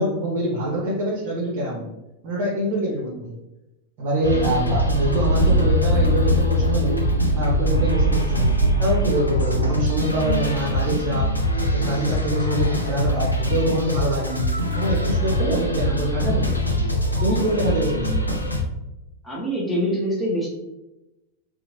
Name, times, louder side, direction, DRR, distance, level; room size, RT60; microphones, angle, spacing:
voice 1, 0.0-1.9 2.2-3.4 4.0-7.0 7.3-11.3 11.7-16.9 17.2-18.4, right 1 dB, 40° right, -3 dB, 0.7 m, -25 dB
sound 1, 4.2-18.6, equal, 85° left, 0.5 m, -23 dB
sound 2, 4.7-10.1, right 2 dB, 70° right, 0.4 m, -24 dB
voice 2, 19.2-20.5, equal, 5° left, -5 dB, 0.9 m, -24 dB
2.8 x 2.4 x 2.9 m, 0.95 s
figure-of-eight pair, 90°, 0 cm